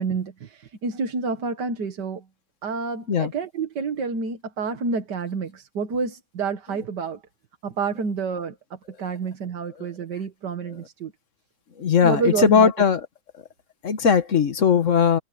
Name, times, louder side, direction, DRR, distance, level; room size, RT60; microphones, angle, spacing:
voice 1, 0.0-2.2 2.6-7.2 7.6-11.1 12.0-12.7, right 5 dB, 75° right, 2.2 m, -29 dB
voice 2, 11.8-13.0 13.8-15.2, left 6 dB, 50° left, 1.4 m, -19 dB
omnidirectional pair, 1.8 m